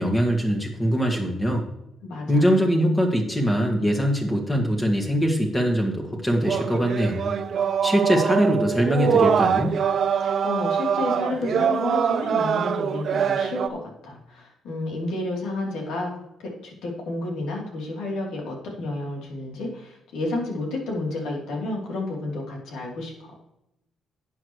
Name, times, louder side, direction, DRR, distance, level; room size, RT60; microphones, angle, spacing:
voice 1, 0.0-1.7 2.3-7.3 7.8-9.7, equal, 20° left, 1 dB, 1.9 m, -22 dB
voice 2, 2.0-2.5 10.2-16.1 16.4-23.3, left 2 dB, 85° left, -1 dB, 3.3 m, -31 dB
sound 1, 6.4-13.7, right 7 dB, 55° right, 0.6 m, -24 dB
11.5 x 7.9 x 3.2 m, 0.84 s
cardioid pair, 90°, 0 cm